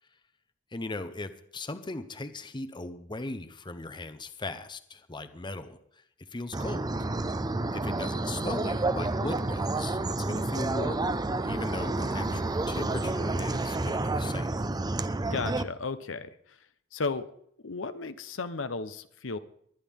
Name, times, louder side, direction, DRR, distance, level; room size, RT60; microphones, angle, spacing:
voice 1, 0.7-6.0 6.3-7.0 7.7-14.5, left 2 dB, 25° left, 11 dB, 0.8 m, -38 dB
sound 1, 6.5-15.6, right 2 dB, 20° right, 0.5 m, -30 dB
voice 2, 15.3-16.6 16.9-17.3 17.6-19.4, left 4 dB, 80° left, 11 dB, 0.9 m, -34 dB
22.0 x 10.0 x 3.6 m, 0.67 s
head